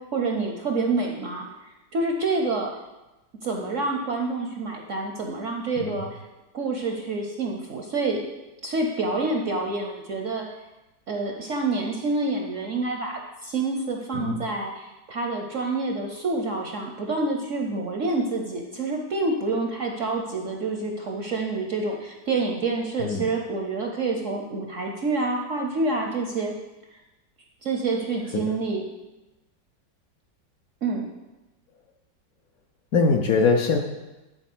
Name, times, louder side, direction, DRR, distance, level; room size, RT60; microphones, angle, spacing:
voice 1, 0.0-1.5 1.9-2.7 3.4-6.2 6.5-8.2 8.6-10.5 11.1-26.5 26.9-27.0 27.6-28.8 30.8-31.1, right 3 dB, 60° right, 2 dB, 0.8 m, -27 dB
voice 2, 32.9-33.8, left 4 dB, 65° left, 3 dB, 1.0 m, -22 dB
10.5 x 4.2 x 6.0 m, 1.1 s
omnidirectional pair, 2.0 m